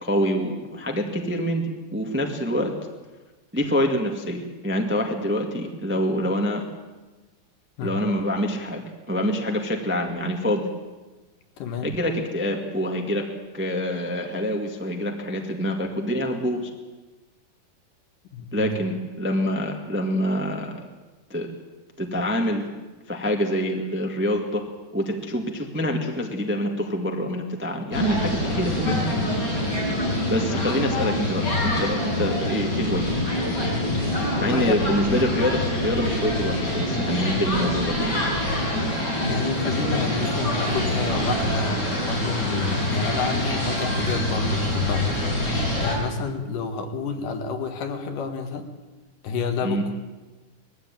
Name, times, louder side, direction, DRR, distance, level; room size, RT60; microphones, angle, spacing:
voice 1, 0.0-2.7 3.5-6.7 7.8-10.7 11.8-13.3 13.5-16.7 18.5-20.8 21.3-21.5 22.0-22.7 23.1-24.6 24.9-29.0 30.3-33.0 34.4-38.2 49.6-49.8, equal, 5° right, 3 dB, 1.0 m, -26 dB
voice 2, 11.6-11.9 18.3-18.7 34.1-34.7 39.1-45.2 45.5-48.7 49.2-49.9, left 5 dB, 80° left, 6 dB, 3.2 m, -30 dB
sound 1, 27.9-46.0, left 1 dB, 30° left, 5.3 m, -25 dB
20.5 x 14.5 x 9.0 m, 1.2 s
omnidirectional pair, 3.7 m